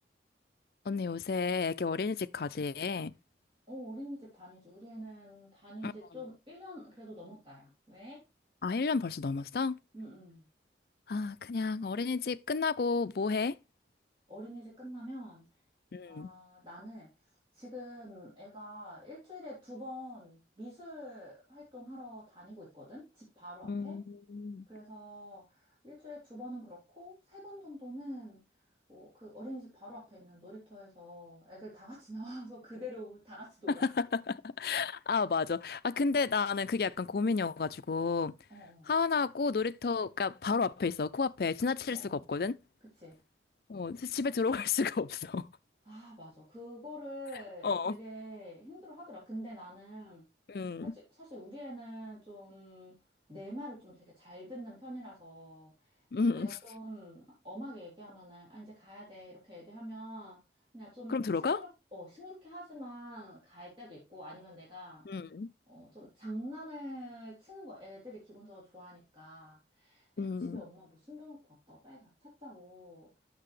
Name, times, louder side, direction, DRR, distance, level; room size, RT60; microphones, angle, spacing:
voice 1, 0.9-3.1 5.8-5.9 8.6-9.8 11.1-13.6 15.9-16.3 23.6-24.7 34.0-38.3 38.9-42.6 43.7-45.5 47.6-48.0 50.5-50.9 56.1-56.6 61.1-61.6 65.1-65.5 70.2-70.6, left 4 dB, 55° left, 0.4 m, -32 dB
voice 2, 3.7-8.2 9.9-10.4 14.3-15.4 16.0-17.1 17.5-24.0 24.7-28.4 28.9-33.9 38.5-38.9 41.9-42.2 43.0-43.2 45.8-50.2 50.8-53.0 53.3-56.0 56.3-60.4 60.7-61.2 61.4-65.1 65.7-70.1 70.4-73.1, equal, 30° right, 3.4 m, -46 dB
8.8 x 6.6 x 3.2 m
head